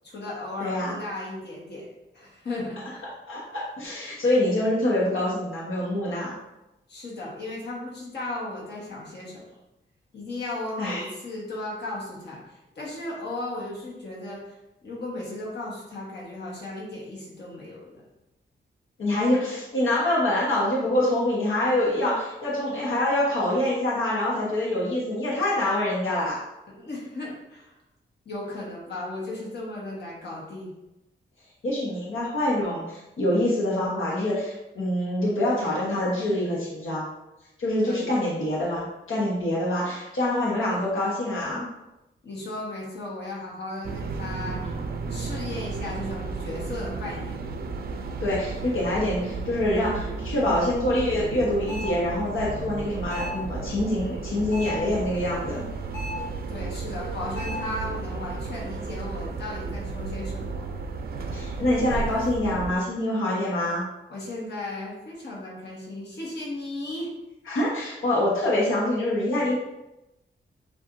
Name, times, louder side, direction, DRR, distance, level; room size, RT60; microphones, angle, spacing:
voice 1, 0.0-1.9 2.1-3.1 6.9-9.4 10.1-18.0 26.7-27.8 28.2-30.7 37.9-38.1 42.2-44.6 45.1-47.4 56.5-60.6 64.1-67.1, left 2 dB, 55° left, -5 dB, 1.3 m, -35 dB
voice 2, 0.6-0.9 3.3-6.3 10.8-11.1 19.0-26.4 31.6-37.1 37.6-41.7 48.2-55.6 61.3-63.8 67.5-69.6, left 1 dB, 85° left, -6 dB, 1.1 m, -25 dB
sound 1, 43.8-62.8, right 4 dB, 50° right, 0.4 m, -33 dB
sound 2, 51.7-52.1 53.1-53.5 54.5-54.9 55.9-56.3 57.4-57.8, left 3 dB, 35° left, 1.3 m, -34 dB
7.0 x 2.5 x 2.5 m, 0.94 s
wide cardioid pair, 160°, 20 cm